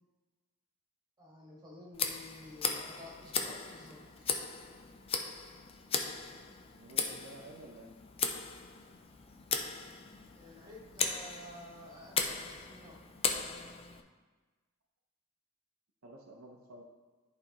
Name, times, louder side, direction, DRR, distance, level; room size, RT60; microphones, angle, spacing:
voice 1, 1.2-4.3 10.3-13.0, left 1 dB, 20° right, -5 dB, 1.8 m, -51 dB
Tick, 1.9-14.0, left 5 dB, 25° left, 0.4 m, -37 dB
voice 2, 6.8-7.9 16.0-16.8, right 1 dB, 70° right, 1 dB, 0.7 m, -51 dB
10.5 x 4.1 x 3.0 m, 1.3 s
head